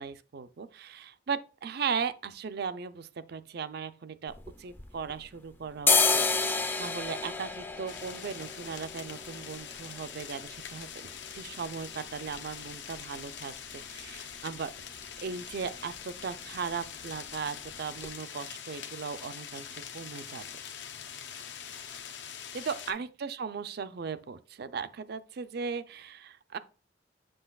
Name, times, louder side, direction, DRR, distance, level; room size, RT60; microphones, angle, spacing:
voice 1, 0.0-4.3 4.6-11.1 11.3-14.7 15.2-20.4 22.5-26.6, right 6 dB, 60° right, 0.5 m, -37 dB
sound 1, 4.3-5.3 5.7-13.4 13.7-13.8 14.1-14.6 14.9-15.2 15.4-15.7 15.9-16.7 17.0-17.2 17.6-17.7 18.0-18.1, left 4 dB, 10° left, 0.4 m, -31 dB
sound 2, 7.9-22.9, left 8 dB, 85° left, 0.7 m, -44 dB
7.8 x 5.7 x 2.3 m
head